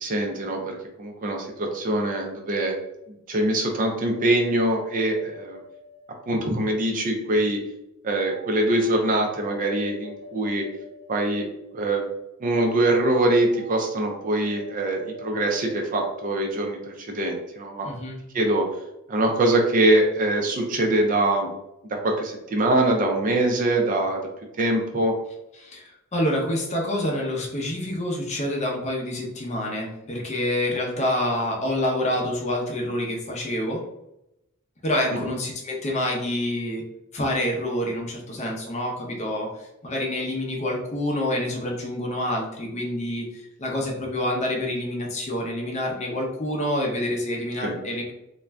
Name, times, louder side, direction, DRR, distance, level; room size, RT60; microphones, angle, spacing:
voice 1, 0.0-2.8 3.3-5.6 6.3-7.6 8.0-10.7 11.1-11.5 11.7-12.1 12.4-17.9 18.3-18.7 19.1-21.5 21.9-24.2 24.6-25.1 47.6-47.7, right 1 dB, 35° right, 2 dB, 0.4 m, -23 dB
sound 1, 4.1-6.8 8.2-12.1 13.4-16.5, left 1 dB, 80° left, 0.7 m, -44 dB
voice 2, 17.8-18.2 25.6-33.8 34.8-36.8 37.1-48.1, left 1 dB, 30° left, 0 dB, 0.5 m, -27 dB
2.5 x 2.1 x 3.2 m, 0.87 s
head